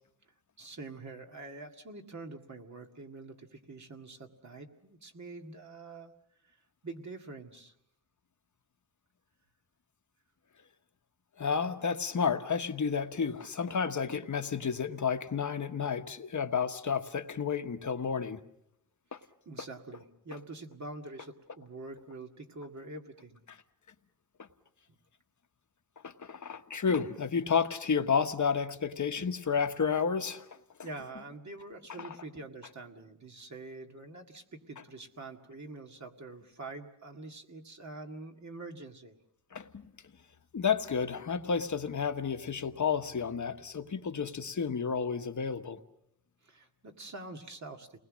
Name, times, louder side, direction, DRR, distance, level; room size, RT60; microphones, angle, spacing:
voice 1, 0.6-6.1 6.4-7.7 19.5-23.4 30.8-39.2 46.4-48.0, right 2 dB, 45° right, 2 dB, 2.0 m, -45 dB
voice 2, 11.4-18.4 19.1-19.2 26.0-30.5 39.5-39.8 40.5-45.8, left 6 dB, 45° left, 7 dB, 1.2 m, -31 dB
30.0 x 20.5 x 6.3 m, 0.79 s
wide cardioid pair, 145°, 40 cm